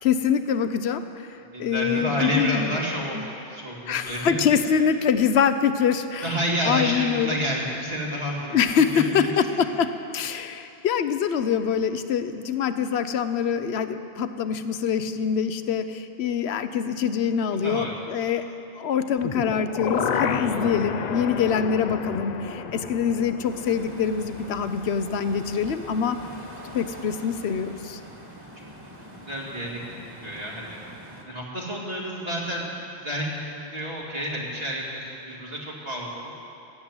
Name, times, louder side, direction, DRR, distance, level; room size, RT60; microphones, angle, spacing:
voice 1, 0.0-1.3 1.6-2.8 3.1-3.3 3.9-6.3 6.6-7.4 8.5-18.5 18.8-26.2 26.7-28.0, left 7 dB, 80° left, 10 dB, 1.0 m, -24 dB
voice 2, 1.4-4.4 6.2-9.2 17.6-17.9 28.6-28.7 29.3-30.8 31.3-36.3, equal, 70° right, -4 dB, 2.8 m, -30 dB
sound 1, 19.2-25.2 25.5-25.6, left 6 dB, 50° left, 0.6 m, -31 dB
sound 2, 23.5-31.2, equal, 20° right, 1.7 m, -44 dB
15.5 x 7.6 x 9.6 m, 2.8 s
omnidirectional pair, 1.1 m